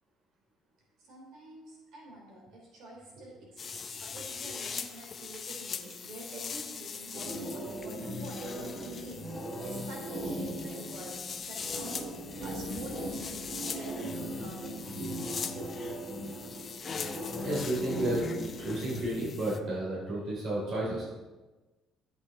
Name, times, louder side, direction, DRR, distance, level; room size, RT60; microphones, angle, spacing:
voice 1, 1.0-15.8, right 1 dB, 70° right, -3 dB, 3.5 m, -47 dB
sound 1, 3.6-19.6, left 6 dB, 35° left, 0.5 m, -42 dB
sound 2, 7.1-18.9, right 1 dB, 25° right, 2.0 m, -38 dB
voice 2, 17.3-18.2 18.6-21.2, right 1 dB, 50° right, -5 dB, 3.1 m, -32 dB
12.0 x 8.2 x 2.9 m, 1.2 s
cardioid pair, 145°, 0 cm